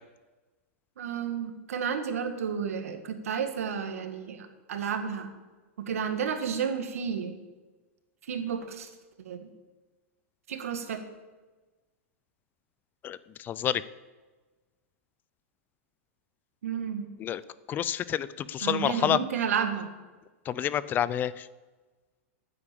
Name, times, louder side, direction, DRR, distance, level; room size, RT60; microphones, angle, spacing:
voice 1, 1.0-5.3 5.8-7.3 8.3-8.9 9.2-9.5 10.5-11.0 16.6-17.1 18.6-19.9, right 7 dB, 85° right, 8 dB, 1.7 m, -31 dB
voice 2, 13.0-13.8 17.2-17.4 17.7-19.2 20.5-21.5, left 10 dB, 25° left, 18 dB, 0.4 m, -28 dB
9.8 x 8.7 x 8.5 m, 1.2 s
hypercardioid pair, 135°, 8 cm